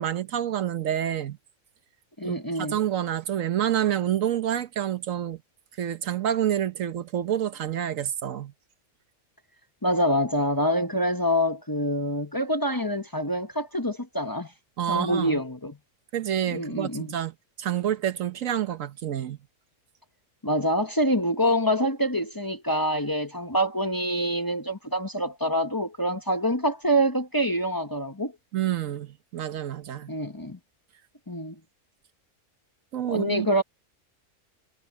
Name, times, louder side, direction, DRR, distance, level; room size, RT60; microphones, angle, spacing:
voice 1, 0.0-1.4 2.2-5.4 5.8-8.5 14.8-15.4 16.1-17.3 17.6-19.4 28.5-30.1 32.9-33.5, right 10 dB, 80° right, 1.3 m, -28 dB
voice 2, 2.2-2.8 9.8-14.5 14.9-15.8 16.5-17.1 20.4-28.3 30.1-30.6 31.3-31.5 33.1-33.6, equal, 20° left, 0.9 m, -26 dB
omnidirectional pair, 1.4 m